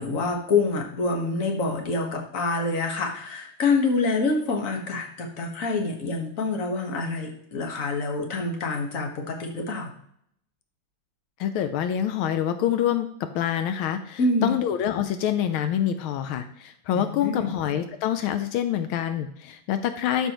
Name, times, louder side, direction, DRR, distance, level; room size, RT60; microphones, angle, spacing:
voice 1, 0.0-9.9 14.2-14.5 16.9-17.5, left 3 dB, 45° left, 1 dB, 1.8 m, -26 dB
voice 2, 11.4-13.1 13.3-20.3, left 10 dB, 85° left, 9 dB, 1.5 m, -26 dB
12.5 x 5.5 x 3.0 m, 0.69 s
omnidirectional pair, 2.2 m